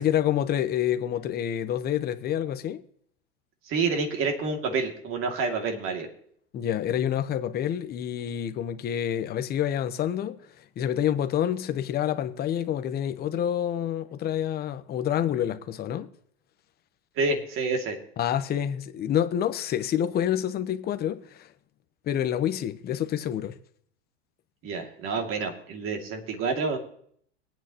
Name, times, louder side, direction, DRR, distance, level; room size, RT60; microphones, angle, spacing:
voice 1, 0.0-2.8 6.5-16.1 18.2-21.5 22.1-23.5, left 10 dB, 30° left, 1.0 m, -28 dB
voice 2, 3.7-6.1 17.2-18.0 24.6-26.8, right 4 dB, 40° right, 2.5 m, -28 dB
23.0 x 9.2 x 3.0 m
supercardioid pair, 130°, 33 cm